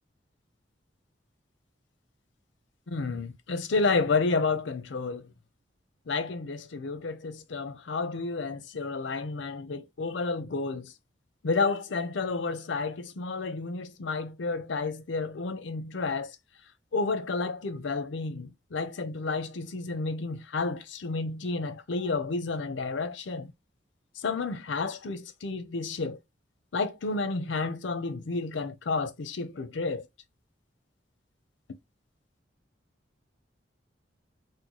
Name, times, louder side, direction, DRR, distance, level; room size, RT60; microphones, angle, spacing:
voice 1, 2.9-5.2 6.1-10.9 11.4-16.4 16.9-23.5 24.2-26.2 26.7-30.1, left 3 dB, 70° left, 0.5 m, -31 dB
3.0 x 2.1 x 3.8 m
head